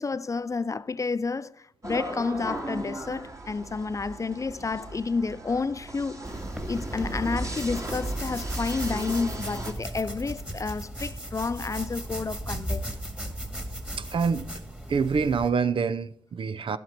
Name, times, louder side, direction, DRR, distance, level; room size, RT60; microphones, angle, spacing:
voice 1, 0.0-6.2 6.7-12.8, left 4 dB, 30° left, 0.4 m, -30 dB
sound 1, 1.8-9.7, right 1 dB, 30° right, 2.0 m, -36 dB
sound 2, 6.3-15.5, right 1 dB, 10° right, 1.9 m, -36 dB
voice 2, 14.0-14.5 14.9-16.8, right 5 dB, 55° right, 0.6 m, -26 dB
10.5 x 7.6 x 4.5 m
supercardioid pair, 50°, 11 cm